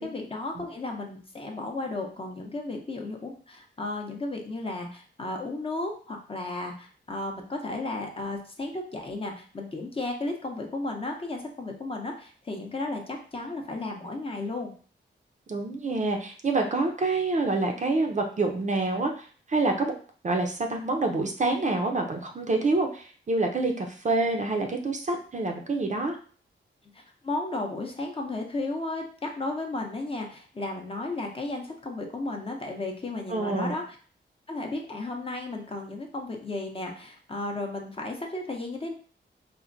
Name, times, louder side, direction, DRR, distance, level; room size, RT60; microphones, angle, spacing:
voice 1, 0.0-14.7 26.9-34.0 34.5-38.9, left 2 dB, 30° left, 1 dB, 0.6 m, -34 dB
voice 2, 15.5-19.9 20.2-26.2 33.3-33.8, right 3 dB, 40° right, 3 dB, 0.5 m, -27 dB
4.2 x 2.1 x 2.5 m, 0.42 s
wide cardioid pair, 110°, 20 cm